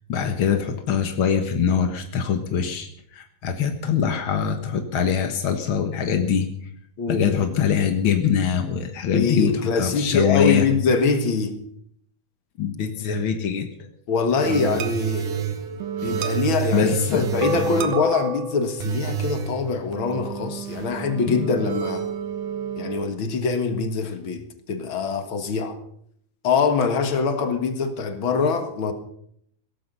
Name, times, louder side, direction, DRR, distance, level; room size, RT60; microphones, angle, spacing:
voice 1, 0.0-6.5 7.1-10.6 12.6-13.7 16.7-17.3 21.3-21.5, left 7 dB, 75° left, 1.1 m, -23 dB
voice 2, 7.0-7.3 9.1-11.5 14.1-15.4 16.0-22.1 22.8-25.8 26.4-28.9, left 5 dB, 50° left, 1.6 m, -24 dB
sound 1, 14.4-23.0, right 5 dB, 60° right, 2.7 m, -28 dB
17.5 x 14.5 x 5.5 m
omnidirectional pair, 4.5 m